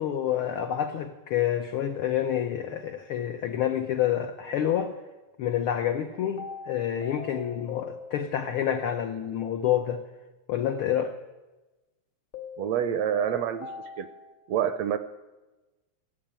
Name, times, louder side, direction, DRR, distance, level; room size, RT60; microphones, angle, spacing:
voice 1, 0.0-5.0 5.4-10.0 10.5-11.2, left 10 dB, 85° left, 6 dB, 1.2 m, -28 dB
sound 1, 2.7-2.9 6.4-8.7 12.3-14.3, left 5 dB, 45° left, 0.6 m, -42 dB
voice 2, 12.6-13.7 14.0-14.1 14.5-15.0, right 9 dB, 75° right, 11 dB, 1.6 m, -27 dB
15.5 x 10.5 x 8.8 m, 1.1 s
omnidirectional pair, 3.4 m